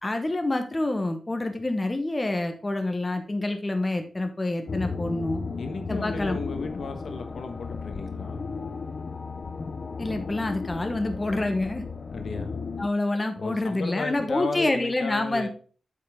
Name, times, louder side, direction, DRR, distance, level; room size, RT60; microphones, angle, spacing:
voice 1, 0.0-5.4 5.9-6.4 10.0-11.8 12.8-15.5, left 2 dB, 25° left, 6 dB, 1.1 m, -27 dB
Space Monster, 4.7-12.9, left 4 dB, 50° left, 0.6 m, -34 dB
voice 2, 5.6-8.4 12.1-12.7 13.4-15.5, left 3 dB, 75° left, 6 dB, 1.2 m, -34 dB
8.1 x 5.6 x 3.6 m, 0.40 s
wide cardioid pair, 90°, 0 cm